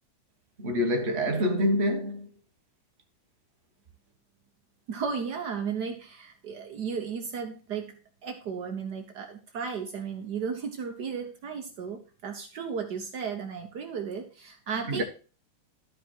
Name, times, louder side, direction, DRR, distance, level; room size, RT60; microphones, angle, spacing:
voice 1, 0.6-2.3 14.9-15.0, equal, 35° right, 1.0 m, -26 dB
voice 2, 4.9-15.0, right 6 dB, 85° right, 0.9 m, -35 dB
12.5 x 5.4 x 4.4 m
omnidirectional pair, 3.3 m